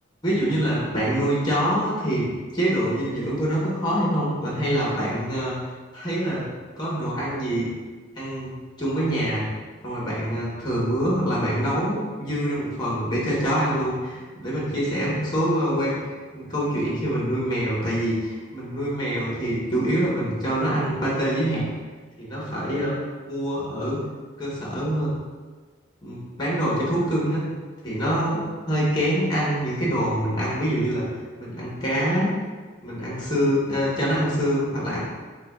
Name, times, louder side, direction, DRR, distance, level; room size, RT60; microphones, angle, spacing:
voice 1, 0.2-5.6 5.9-6.5 6.8-7.7 8.2-9.4 9.8-16.0 16.3-21.6 22.2-23.0 23.3-24.0 24.4-25.1 26.0-27.5 27.8-31.0 31.4-32.3 32.8-35.0, equal, 20° left, -6 dB, 0.9 m, -25 dB
6.5 x 2.2 x 2.3 m, 1.4 s
head